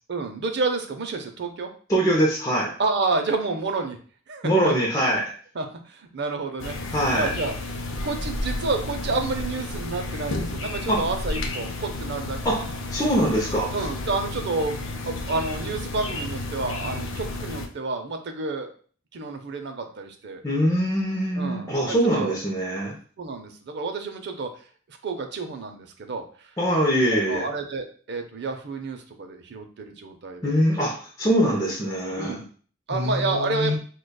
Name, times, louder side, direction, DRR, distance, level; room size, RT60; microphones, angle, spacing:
voice 1, 0.1-1.7 2.8-4.0 4.3-4.7 5.5-6.8 7.1-7.5 7.9-12.5 13.7-18.7 19.1-20.4 21.4-22.3 23.2-24.5 25.0-26.5 27.1-30.5 32.2-32.4 32.9-33.7, right 3 dB, 55° right, 5 dB, 0.6 m, -29 dB
voice 2, 1.9-2.8 4.4-5.3 6.9-7.3 10.9-11.1 12.4-12.7 12.9-13.7 20.4-22.9 26.6-27.5 30.4-32.4 32.9-33.8, equal, 15° left, -4 dB, 0.6 m, -23 dB
sound 1, 6.6-17.7, left 2 dB, 65° left, 0.5 m, -32 dB
4.9 x 2.2 x 2.2 m, 0.43 s
head